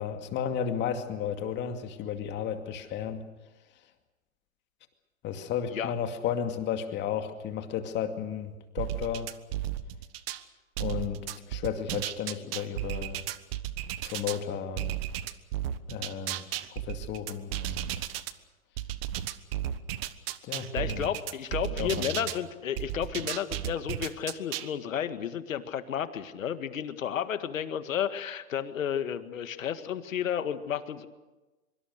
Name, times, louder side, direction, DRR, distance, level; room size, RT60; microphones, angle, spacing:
voice 1, 0.0-3.2 5.2-9.3 10.8-13.2 14.0-15.0 15.9-17.9 20.4-21.1 21.7-22.2, left 8 dB, 25° left, 6 dB, 2.4 m, -33 dB
sound 1, 8.8-10.4 10.8-14.4 14.8-18.3 18.8-22.4 22.8-24.7, right 12 dB, 45° right, 1.3 m, -34 dB
voice 2, 20.7-31.1, left 9 dB, 70° left, 11 dB, 1.9 m, -32 dB
24.0 x 24.0 x 6.6 m, 1.2 s
hypercardioid pair, 125°, 41 cm